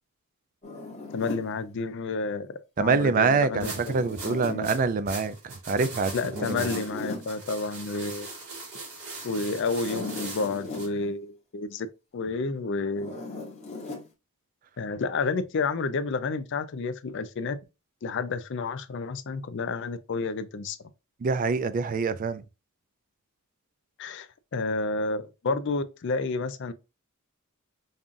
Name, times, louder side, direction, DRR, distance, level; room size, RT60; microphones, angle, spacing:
Zipper (clothing), 0.6-1.5 3.4-4.6 6.2-7.3 9.7-10.9 12.9-14.1, left 3 dB, 30° left, 1.1 m, -38 dB
voice 1, 1.1-4.0 4.2-4.7 6.1-8.3 9.2-11.9 12.1-13.1 14.8-17.6 18.0-20.8 24.0-26.7, left 3 dB, 55° left, 0.4 m, -30 dB
voice 2, 2.8-6.7 21.2-22.4, right 4 dB, 40° right, 0.3 m, -25 dB
sound 1, 3.6-10.9, right 3 dB, 85° right, 1.8 m, -40 dB
5.3 x 2.4 x 2.5 m
head